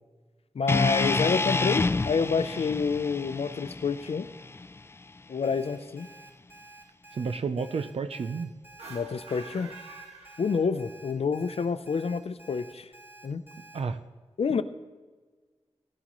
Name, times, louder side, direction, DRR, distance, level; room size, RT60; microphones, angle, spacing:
voice 1, 0.5-4.3 5.3-6.1 8.9-9.7 10.4-12.9 13.2-13.4 14.4-14.6, left 5 dB, 70° left, 12 dB, 0.6 m, -28 dB
sound 1, 0.7-4.9, left 3 dB, 25° left, 0.3 m, -28 dB
Alarm, 5.4-13.8, right 2 dB, 20° right, 3.8 m, -51 dB
voice 2, 7.1-8.5 13.7-14.0, right 5 dB, 70° right, 9 dB, 0.6 m, -31 dB
sound 2, 8.7-11.0, right 3 dB, 90° right, 1.7 m, -46 dB
15.5 x 12.0 x 3.1 m, 1.4 s
cardioid pair, 50°, 10 cm